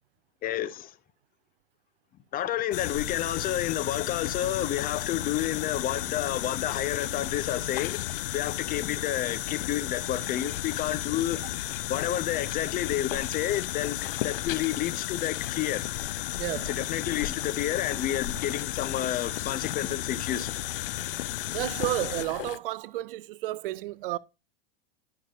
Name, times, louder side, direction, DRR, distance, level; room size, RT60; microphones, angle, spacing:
voice 1, 0.4-0.9 2.3-11.4 11.9-15.9 16.6-20.5, left 12 dB, 30° left, 0.7 m, -30 dB
sound 1, 2.7-22.6, left 15 dB, 65° left, 0.5 m, -33 dB
voice 2, 16.4-16.7 21.5-24.2, right 16 dB, 65° right, 0.4 m, -31 dB
11.5 x 6.0 x 2.5 m
hypercardioid pair, 95°, 30 cm